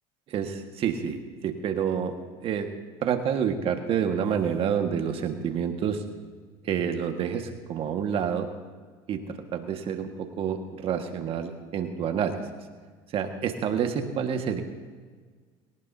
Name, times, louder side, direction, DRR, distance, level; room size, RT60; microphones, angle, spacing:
voice 1, 0.3-2.7 3.0-6.0 6.6-8.5 9.1-12.4 13.1-14.6, right 7 dB, 50° right, 5 dB, 1.7 m, -28 dB
22.5 x 18.0 x 2.8 m, 1.5 s
supercardioid pair, 100°, 12 cm